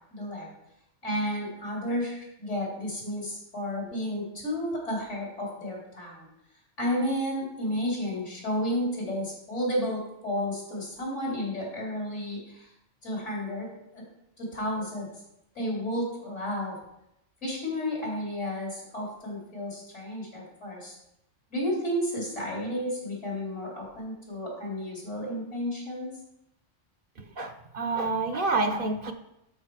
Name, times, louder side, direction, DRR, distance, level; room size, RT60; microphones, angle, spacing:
voice 1, 0.1-0.5 1.0-6.3 6.8-12.7 13.0-14.0 14.4-15.1 15.5-16.8 17.4-20.9 21.5-26.1, equal, 75° left, -4 dB, 4.3 m, -32 dB
voice 2, 27.2-29.1, right 3 dB, 50° right, 7 dB, 0.9 m, -28 dB
12.5 x 5.2 x 4.8 m, 0.85 s
omnidirectional pair, 1.2 m